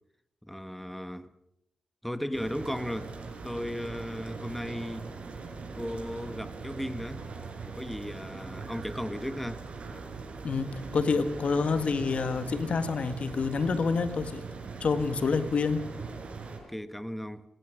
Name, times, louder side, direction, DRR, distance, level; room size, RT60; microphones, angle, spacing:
voice 1, 0.4-1.3 2.0-3.1 3.4-5.1 5.8-7.3 7.6-9.6 16.5-17.4, equal, 5° left, 1.3 m, -36 dB
sound 1, 2.3-16.6, right 4 dB, 65° right, 5.9 m, -41 dB
voice 2, 10.4-14.5 14.8-15.8, left 4 dB, 65° left, 1.8 m, -28 dB
26.0 x 17.5 x 6.4 m
cardioid pair, 55°, 2 cm